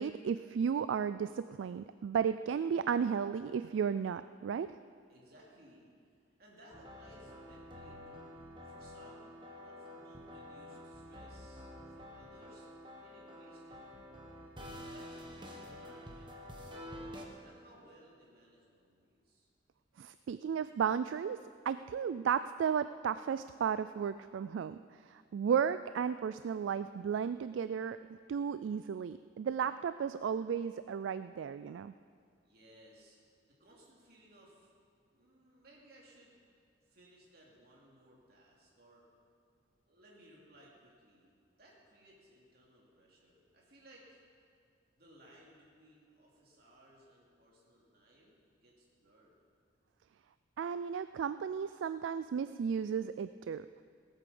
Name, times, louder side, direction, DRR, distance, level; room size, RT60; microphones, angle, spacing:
voice 1, 0.0-4.7 20.0-21.4 21.7-28.0 28.3-31.9 50.6-53.7, right 7 dB, 90° right, 13 dB, 0.3 m, -34 dB
voice 2, 5.1-5.9 6.4-12.7 13.0-13.8 14.6-19.5 32.4-33.2 33.5-34.7 35.1-36.4 36.8-39.1 39.9-44.5 44.9-49.4, right 1 dB, 55° right, -4 dB, 2.9 m, -61 dB
sound 1, 6.7-17.2, left 1 dB, 25° right, 1.4 m, -49 dB
17.0 x 8.3 x 7.0 m, 2.2 s
head